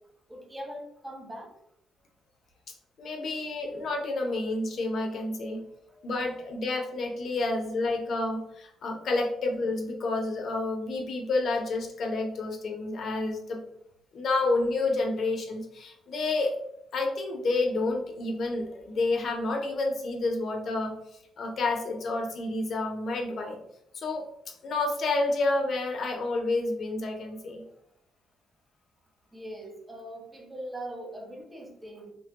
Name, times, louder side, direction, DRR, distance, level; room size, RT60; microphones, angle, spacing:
voice 1, 0.3-1.5 29.3-32.1, right 1 dB, 15° right, -1 dB, 0.7 m, -41 dB
voice 2, 3.0-5.7 6.0-13.6 14.1-16.6 16.9-21.0 21.4-23.6 23.9-24.3 24.6-27.6, left 2 dB, 60° left, 2 dB, 0.6 m, -29 dB
3.1 x 2.2 x 2.8 m, 0.77 s
cardioid pair, 90°, 0 cm